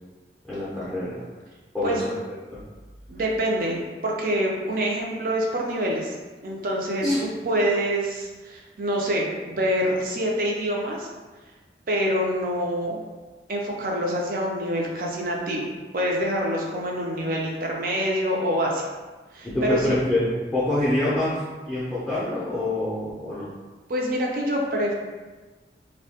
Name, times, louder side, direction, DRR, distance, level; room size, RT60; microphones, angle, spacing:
voice 1, 0.5-1.2 1.7-2.1 2.5-2.6 7.0-7.2 19.4-21.4 21.7-23.5, left 1 dB, 5° left, -12 dB, 0.4 m, -25 dB
voice 2, 3.1-6.1 6.4-7.1 7.4-11.1 11.9-13.0 13.5-15.7 15.9-18.8 19.3-19.9 23.9-24.9, equal, 50° right, -1 dB, 0.4 m, -26 dB
2.6 x 2.1 x 2.8 m, 1.3 s
head